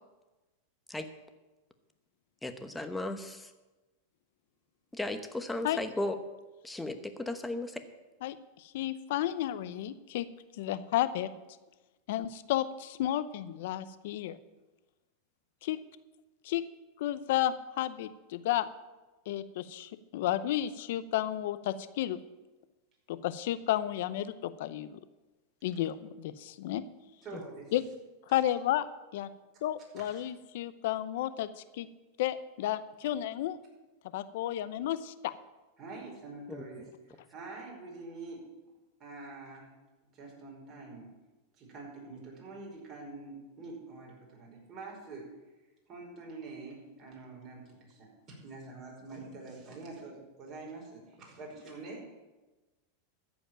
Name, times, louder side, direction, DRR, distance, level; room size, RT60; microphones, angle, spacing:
voice 1, 2.4-3.5 4.9-6.2 6.6-7.8 27.3-27.4 36.5-36.6, left 2 dB, 5° left, 8 dB, 1.0 m, -36 dB
voice 2, 8.7-10.3 10.6-11.3 12.1-14.4 15.7-15.8 16.4-16.6 17.0-18.7 19.3-22.2 23.1-25.0 25.6-26.8 27.7-27.8 28.3-28.9 29.1-29.3 29.6-31.5 31.8-31.9 32.2-33.6 34.1-35.3, left 13 dB, 70° left, 14 dB, 0.7 m, -32 dB
voice 3, 27.2-27.7 30.0-30.2 35.8-38.4 39.0-39.7 40.0-41.1 41.6-45.3 45.9-52.0, right 3 dB, 40° right, -2 dB, 5.1 m, -46 dB
14.0 x 5.1 x 8.9 m, 1.1 s
hypercardioid pair, 125°, 0 cm